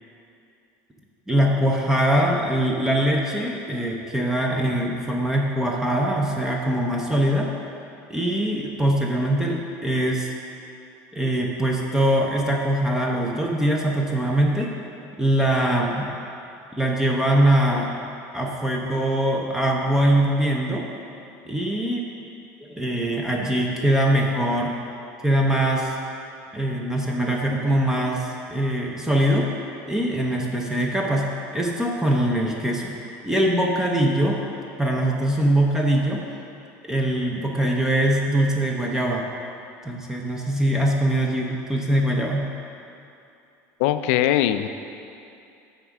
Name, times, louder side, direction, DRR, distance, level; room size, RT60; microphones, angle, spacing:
voice 1, 1.3-7.5 8.1-10.3 11.1-14.7 15.2-16.1 16.8-17.9 18.3-20.9 21.5-22.1 22.6-24.7 25.2-25.9 26.5-29.5 29.8-33.0 33.2-34.4 34.8-36.2 36.8-39.2 39.8-42.5, right 1 dB, 5° right, -1 dB, 0.6 m, -22 dB
voice 2, 43.8-44.7, left 12 dB, 85° left, 10 dB, 0.4 m, -20 dB
8.8 x 3.6 x 6.0 m, 2.6 s
cardioid pair, 140°, 7 cm